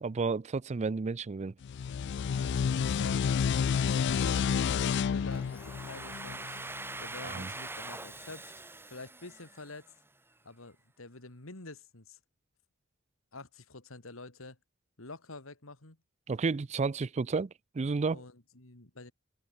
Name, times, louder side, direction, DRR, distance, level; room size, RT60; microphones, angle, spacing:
voice 1, 0.0-1.5 7.2-7.5 16.3-18.2, right 4 dB, 35° right, 0.4 m, -32 dB
sound 1, 1.6-6.9, left 7 dB, 60° left, 0.3 m, -30 dB
voice 2, 2.4-3.3 3.9-6.6 7.0-8.5 8.9-9.9 10.4-12.2 13.3-14.6 15.0-16.0 18.1-19.1, left 3 dB, 85° left, 2.7 m, -47 dB
Domestic sounds home sounds, 5.3-10.1, right 2 dB, 10° right, 2.0 m, -43 dB
open air
head